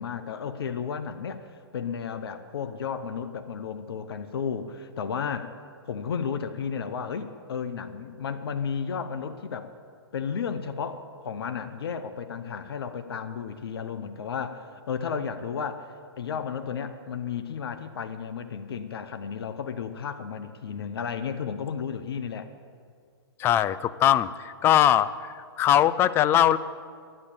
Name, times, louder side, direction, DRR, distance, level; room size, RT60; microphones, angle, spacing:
voice 1, 0.0-1.5 1.7-5.5 5.9-9.7 10.1-22.5, left 6 dB, 65° left, 10 dB, 0.9 m, -33 dB
voice 2, 23.4-26.6, left 11 dB, 15° left, 15 dB, 0.3 m, -21 dB
11.0 x 10.0 x 8.3 m, 2.1 s
hypercardioid pair, 130°, 14 cm